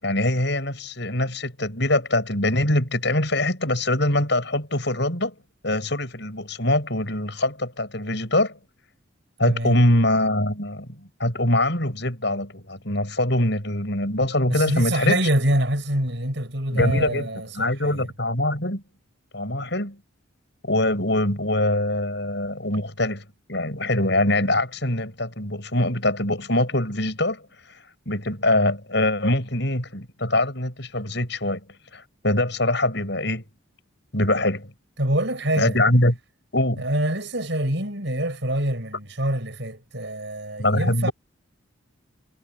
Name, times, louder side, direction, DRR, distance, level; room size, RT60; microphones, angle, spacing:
voice 1, 0.0-5.3 5.6-8.6 9.4-15.2 16.7-17.3 17.5-18.8 19.3-20.0 20.6-31.6 31.9-33.5 34.1-34.7 35.6-36.2 36.5-36.8 40.6-41.1, left 1 dB, 60° left, 7.8 m, -23 dB
voice 2, 14.5-18.1 35.0-35.8 36.8-41.1, right 1 dB, 60° right, 6.4 m, -25 dB
head